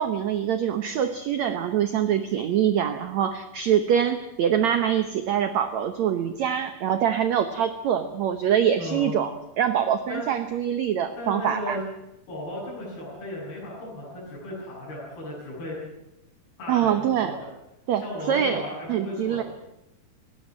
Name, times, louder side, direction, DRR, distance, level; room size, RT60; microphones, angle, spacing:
voice 1, 0.0-9.3 9.6-11.8 16.7-17.4 17.9-18.0 18.3-18.6 18.9-19.4, right 9 dB, 70° right, 9 dB, 1.8 m, -24 dB
voice 2, 8.8-9.1 10.1-10.3 11.2-11.8 12.3-15.8 16.6-17.4 18.0-19.5, left 1 dB, 85° left, -10 dB, 9.9 m, -35 dB
19.0 x 17.5 x 9.0 m, 0.90 s
omnidirectional pair, 4.4 m